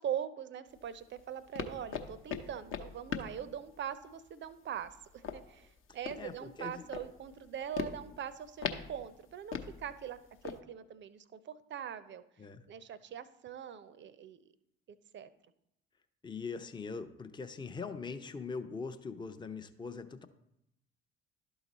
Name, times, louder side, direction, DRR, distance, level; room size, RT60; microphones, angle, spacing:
voice 1, 0.0-10.2 10.4-12.2 12.7-14.4 15.1-15.3, right 9 dB, 40° right, 14 dB, 0.6 m, -42 dB
sound 1, 0.7-10.6, left 7 dB, 45° left, 0.8 m, -42 dB
voice 2, 6.2-6.8 12.4-12.6 16.2-20.3, left 4 dB, 15° left, 8 dB, 0.6 m, -42 dB
11.5 x 3.9 x 4.1 m, 0.80 s
hypercardioid pair, 50°, 30 cm